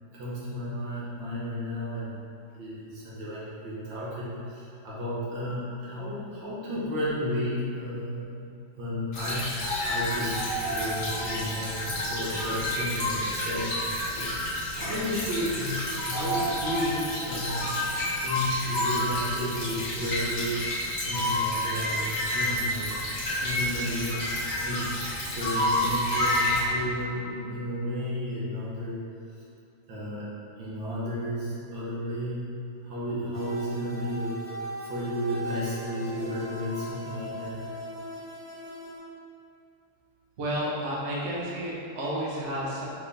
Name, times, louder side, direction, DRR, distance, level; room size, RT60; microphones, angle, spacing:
voice 1, 0.1-2.1 2.5-8.3 8.8-9.5 9.8-10.4 10.6-17.8 18.2-20.6 21.0-22.9 23.3-24.2 24.6-29.0 29.3-29.4 29.9-30.3 30.6-32.4 32.8-37.6, equal, 75° right, -8 dB, 1.9 m, -33 dB
Stream / Trickle dribble, 9.1-26.6, left 1 dB, 40° left, 1.0 m, -34 dB
sound 1, 9.6-15.1 15.5-15.6 15.9-26.8, left 1 dB, 90° left, 1.6 m, -31 dB
sound 2, 33.3-39.0, equal, 20° right, 1.0 m, -39 dB
voice 2, 40.4-42.8, equal, 55° right, -5 dB, 0.7 m, -31 dB
5.4 x 2.7 x 3.4 m, 2.6 s
omnidirectional pair, 2.2 m